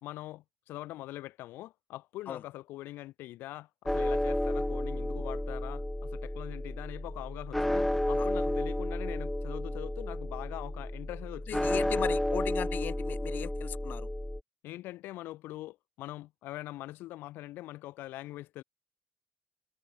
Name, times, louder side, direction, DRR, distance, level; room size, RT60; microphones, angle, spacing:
voice 1, 0.0-12.2 14.6-18.6, left 16 dB, 85° left, 2.5 m, -43 dB
sound 1, 3.9-14.4, left 1 dB, 5° left, 0.3 m, -32 dB
voice 2, 11.5-14.1, left 9 dB, 65° left, 1.2 m, -37 dB
cardioid pair, 75°, 4 cm